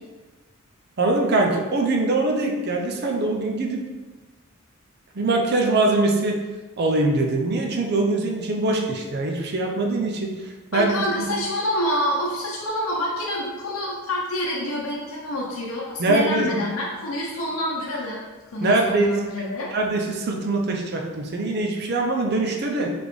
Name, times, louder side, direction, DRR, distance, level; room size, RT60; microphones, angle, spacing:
voice 1, 1.0-3.8 5.1-6.4 6.8-10.3 10.7-11.4 16.0-16.5 18.6-19.1 19.7-22.9, right 2 dB, 50° right, 1 dB, 0.5 m, -22 dB
voice 2, 10.7-18.2 18.5-19.7, left 1 dB, 70° left, -4 dB, 0.7 m, -27 dB
4.1 x 3.3 x 3.1 m, 1.3 s
head